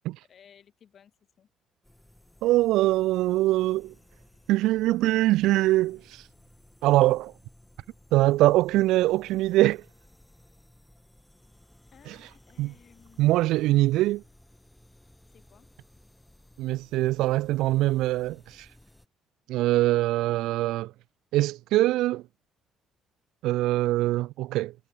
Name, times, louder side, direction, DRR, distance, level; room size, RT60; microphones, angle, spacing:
voice 1, 0.3-1.1 1.4-1.5 11.9-14.0 15.3-15.7, left 8 dB, 35° left, 4.6 m, -58 dB
sound 1, 1.8-19.1, left 1 dB, 5° left, 4.3 m, -57 dB
voice 2, 2.4-3.9 4.5-6.2 6.8-7.3 8.1-9.8 12.1-12.2 12.6-12.7 13.2-14.2 16.6-18.7 19.5-20.9 21.3-22.2 23.4-24.7, right 17 dB, 90° right, 0.5 m, -23 dB
cardioid pair, 170°, 0 cm